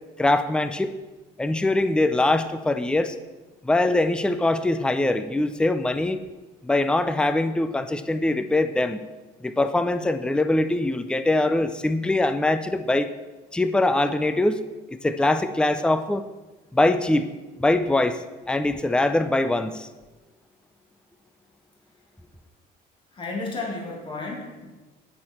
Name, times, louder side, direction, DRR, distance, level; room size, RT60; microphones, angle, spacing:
voice 1, 0.2-0.9 1.4-3.1 3.6-6.2 6.6-9.0 9.4-13.1 13.5-14.6 14.9-16.2 16.7-17.3 17.6-18.2 18.5-19.9, left 2 dB, 5° left, 10 dB, 0.6 m, -22 dB
voice 2, 23.1-24.7, left 3 dB, 30° left, -1 dB, 2.4 m, -32 dB
17.5 x 6.5 x 4.4 m, 1.2 s
cardioid pair, 110°, 17 cm